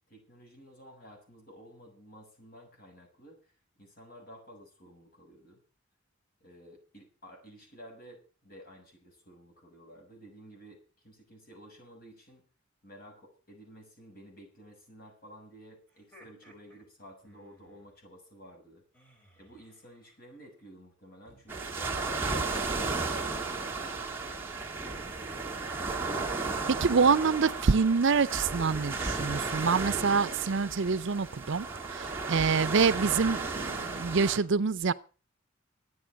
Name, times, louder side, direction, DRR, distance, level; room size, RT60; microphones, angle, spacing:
voice 1, 0.1-3.5 3.8-5.6 6.4-12.5 12.8-18.8 19.4-23.4 23.8-24.8, equal, 50° left, 6.9 m, -53 dB
sound 1, 15.9-17.9 18.9-20.3 21.3-22.9 24.5-24.9 26.8-28.0 28.3-28.4 28.7-32.3, right 1 dB, 10° left, 5.0 m, -56 dB
sound 2, 21.5-34.4, right 3 dB, 10° right, 2.6 m, -34 dB
voice 2, 26.7-31.7 31.9-34.9, right 5 dB, 65° right, 0.6 m, -26 dB
13.0 x 9.3 x 7.5 m
head